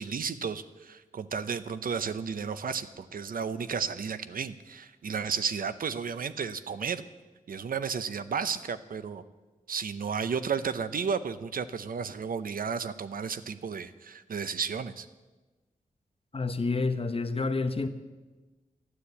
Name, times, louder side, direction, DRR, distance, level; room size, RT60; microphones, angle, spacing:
voice 1, 0.0-7.0 7.5-9.2 9.7-15.1, right 6 dB, 90° right, 13 dB, 0.7 m, -33 dB
voice 2, 16.3-17.9, left 3 dB, 40° left, 7 dB, 1.1 m, -29 dB
13.0 x 12.0 x 8.2 m, 1.2 s
wide cardioid pair, 95°, 14 cm